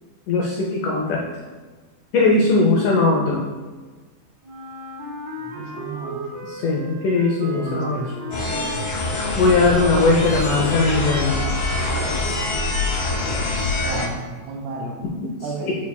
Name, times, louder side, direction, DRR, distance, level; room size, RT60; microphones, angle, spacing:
voice 1, 0.3-1.3 2.1-3.4 6.4-8.0 9.3-11.5 15.4-15.8, left 3 dB, 85° left, -2 dB, 1.8 m, -19 dB
Wind instrument woodwind instrument, 4.4-10.2, right 1 dB, 65° right, 2.2 m, -35 dB
voice 2, 5.4-6.2 7.5-8.1 13.8-15.0 15.4-15.7, right 3 dB, 85° right, 0 dB, 2.6 m, -32 dB
sound 1, 8.3-14.1, left 2 dB, 65° left, 2.1 m, -24 dB
10.5 x 4.7 x 2.2 m, 1.4 s
omnidirectional pair, 4.5 m